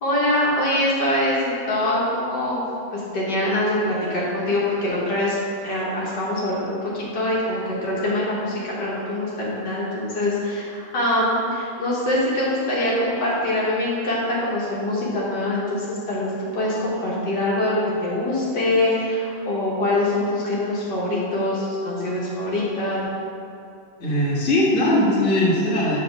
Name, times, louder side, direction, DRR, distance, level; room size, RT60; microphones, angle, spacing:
voice 1, 0.0-2.6 2.9-5.4 5.6-23.0, left 1 dB, 75° left, -6 dB, 1.9 m, -24 dB
voice 2, 24.0-26.0, left 1 dB, 50° left, -6 dB, 1.9 m, -20 dB
7.6 x 4.2 x 5.9 m, 2.5 s
omnidirectional pair, 1.8 m